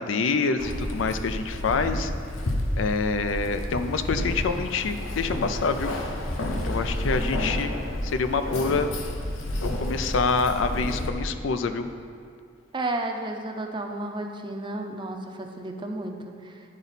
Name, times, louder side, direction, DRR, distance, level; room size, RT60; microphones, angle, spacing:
voice 1, 0.0-2.1 2.8-5.9 6.6-7.7 8.0-8.9 9.6-11.9, left 4 dB, 70° left, 9 dB, 0.4 m, -26 dB
Keys jangling, 0.6-11.1, left 1 dB, 90° left, 0.8 m, -30 dB
voice 2, 12.7-16.5, right 2 dB, 25° right, 3 dB, 0.5 m, -32 dB
11.0 x 3.9 x 4.1 m, 2.2 s
head